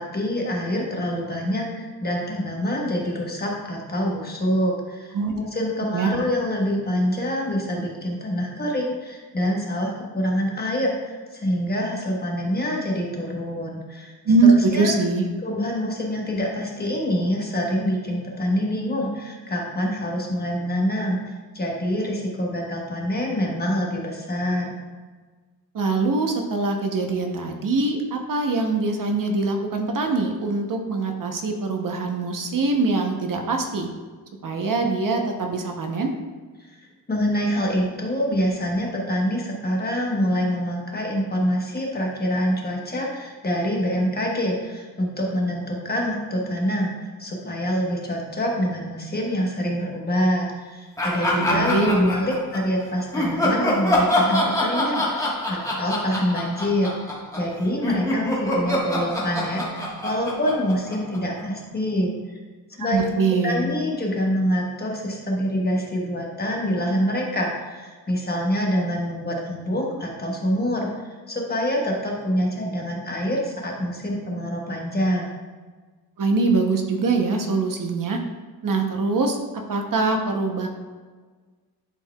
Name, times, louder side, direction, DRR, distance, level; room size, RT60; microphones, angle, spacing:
voice 1, 0.0-14.1 14.4-14.9 15.4-24.8 36.7-36.8 37.1-62.4 62.8-63.0 63.4-75.3, equal, 25° left, -2 dB, 1.1 m, -26 dB
voice 2, 14.2-15.3 25.7-33.9 34.4-36.1 51.4-52.1 62.8-63.7 76.2-78.2 78.6-79.4 79.7-80.7, right 3 dB, 55° right, 3 dB, 0.8 m, -23 dB
Laughter, 51.0-52.7 53.1-57.5 57.8-61.4, left 1 dB, 10° left, 1.3 m, -25 dB
10.5 x 4.6 x 2.3 m, 1.4 s
wide cardioid pair, 145°, 39 cm